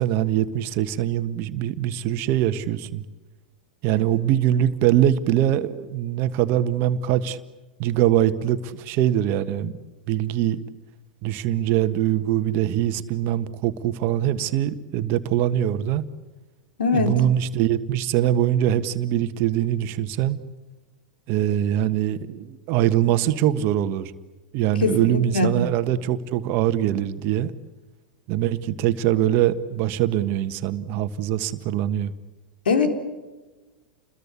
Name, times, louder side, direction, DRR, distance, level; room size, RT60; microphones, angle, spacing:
voice 1, 0.0-3.0 3.8-7.4 7.8-9.7 10.1-10.6 11.2-16.0 16.9-20.4 21.3-24.1 24.5-27.5 28.3-32.1, right 11 dB, 45° right, 11 dB, 1.5 m, -23 dB
voice 2, 16.8-17.1 24.8-25.5 32.7-32.9, left 4 dB, 75° left, 6 dB, 4.0 m, -22 dB
30.0 x 22.0 x 8.5 m, 1.2 s
hypercardioid pair, 95°, 5 cm